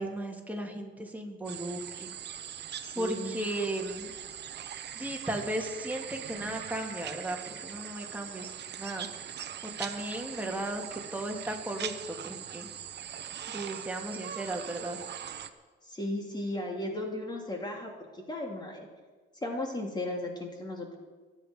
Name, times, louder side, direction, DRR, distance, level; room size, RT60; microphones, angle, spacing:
voice 1, 0.0-2.1 3.0-4.1 4.9-8.5 8.8-9.1 9.8-12.7 13.5-15.0, right 1 dB, 10° right, 1 dB, 2.7 m, -35 dB
sound 1, 1.4-15.5, right 9 dB, 60° right, 1.0 m, -41 dB
voice 2, 2.9-3.4 15.9-18.9 19.4-20.9, left 1 dB, 20° left, 1 dB, 2.9 m, -35 dB
24.0 x 8.9 x 5.3 m, 1.4 s
cardioid pair, 90°, 20 cm